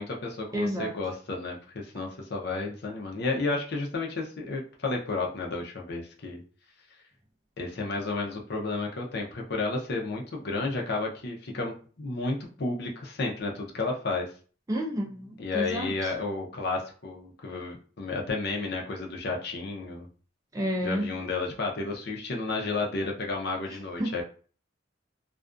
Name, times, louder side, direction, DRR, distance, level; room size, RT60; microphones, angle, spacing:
voice 1, 0.0-6.4 7.6-14.3 15.4-20.1 20.8-24.2, left 3 dB, 55° left, 1 dB, 0.6 m, -32 dB
voice 2, 0.5-0.9 14.7-16.1 20.5-21.1 24.0-24.2, equal, 15° right, 0 dB, 0.4 m, -30 dB
2.4 x 2.1 x 2.4 m, 0.40 s
head